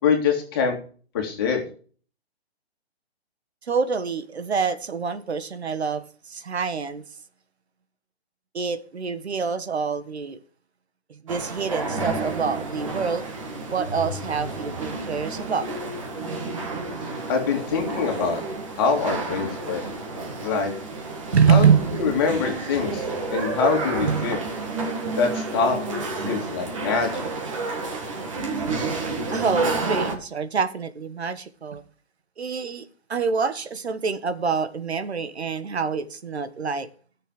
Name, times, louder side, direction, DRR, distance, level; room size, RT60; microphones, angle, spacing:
voice 1, 0.0-0.8 1.1-1.6 17.3-18.4 18.8-19.8 20.4-20.7 21.5-21.7 21.9-24.4 25.2-25.8 26.2-27.2, left 5 dB, 20° left, 2.6 m, -24 dB
voice 2, 3.6-7.0 8.5-10.4 11.1-13.3 13.7-15.7 21.3-22.3 24.0-24.3 29.3-31.8 32.4-36.9, right 6 dB, 80° right, 1.5 m, -25 dB
sound 1, 11.3-30.2, right 3 dB, 30° right, 2.1 m, -30 dB
14.5 x 6.9 x 4.9 m
hypercardioid pair, 175°, 32 cm